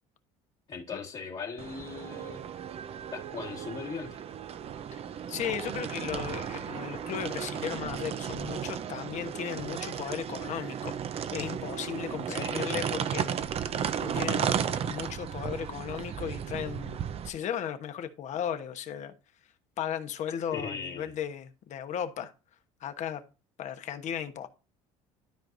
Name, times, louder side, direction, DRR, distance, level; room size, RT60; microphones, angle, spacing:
voice 1, 0.7-2.5 3.1-4.2 12.3-12.9 20.5-21.1, left 5 dB, 40° left, 1.6 m, -39 dB
sound 1, 1.6-17.3, right 8 dB, 45° right, 0.7 m, -34 dB
voice 2, 5.3-11.0 11.3-13.4 13.6-19.1 19.8-22.3 22.8-23.2 23.6-24.5, left 9 dB, 55° left, 1.1 m, -36 dB
13.0 x 4.7 x 2.6 m
supercardioid pair, 100°, 15 cm